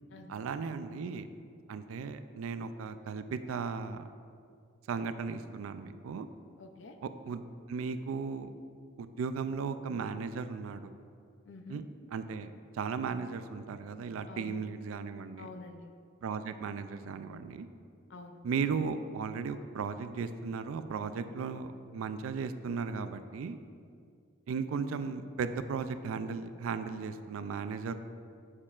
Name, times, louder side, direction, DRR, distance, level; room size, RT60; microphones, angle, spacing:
voice 1, 0.3-1.3 1.7-4.1 4.9-6.3 7.0-7.4 7.7-8.5 9.0-10.9 11.7-11.8 12.1-15.5 16.2-17.7 18.4-23.6 24.5-27.9, right 5 dB, 90° right, 11 dB, 0.3 m, -36 dB
voice 2, 6.6-7.0 11.4-11.8 14.3-14.6 15.4-15.9 18.1-18.4, left 3 dB, 60° left, 6 dB, 0.5 m, -48 dB
7.3 x 6.5 x 2.4 m, 2.2 s
head